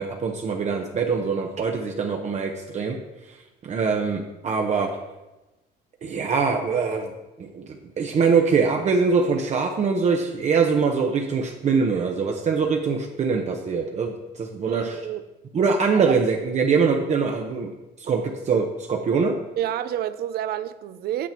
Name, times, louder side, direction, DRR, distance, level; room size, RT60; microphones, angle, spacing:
voice 1, 0.0-3.0 3.6-5.0 6.0-7.1 7.4-7.7 8.0-15.0 15.5-17.7 18.0-19.4, right 5 dB, 45° right, 0.9 m, -23 dB
voice 2, 14.7-15.2 16.1-16.2 19.6-21.3, right 11 dB, 65° right, 0.6 m, -29 dB
8.4 x 7.2 x 4.4 m
cardioid pair, 110°, 17 cm